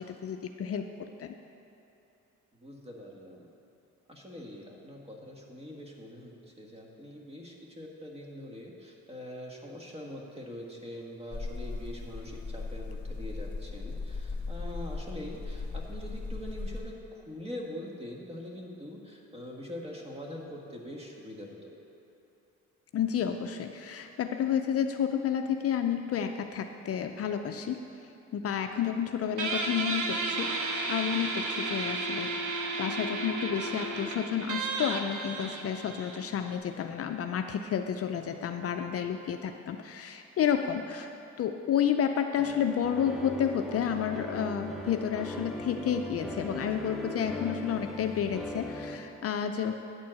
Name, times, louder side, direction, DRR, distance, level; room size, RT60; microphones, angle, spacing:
voice 1, 0.0-1.4 22.9-27.8 28.3-32.3 32.8-41.1 41.4-49.8, left 8 dB, 50° left, 6 dB, 0.5 m, -31 dB
voice 2, 2.5-3.5 4.1-21.7, left 1 dB, 20° right, -1 dB, 1.5 m, -43 dB
sound 1, 11.3-16.8, left 3 dB, 15° left, 2.1 m, -37 dB
Guitar, 29.4-36.6, right 3 dB, 75° right, 1.0 m, -33 dB
sound 2, 42.3-49.0, left 1 dB, ahead, 0.9 m, -40 dB
9.4 x 4.4 x 7.5 m, 3.0 s
cardioid pair, 90°, 30 cm